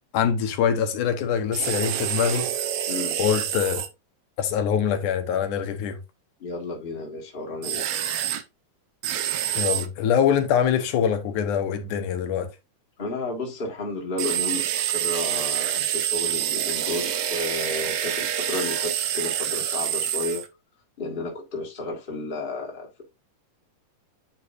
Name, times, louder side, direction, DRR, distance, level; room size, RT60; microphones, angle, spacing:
voice 1, 0.1-2.5 3.2-3.8 4.4-6.0 9.5-12.5, left 8 dB, 80° left, 2.4 m, -24 dB
sound 1, 1.5-3.9 7.6-8.4 9.0-9.9 14.2-20.5, right 10 dB, 75° right, 1.9 m, -27 dB
voice 2, 2.9-3.2 6.4-7.9 13.0-20.4 21.0-23.0, left 2 dB, 20° left, 1.6 m, -32 dB
9.3 x 4.7 x 2.7 m
omnidirectional pair, 3.6 m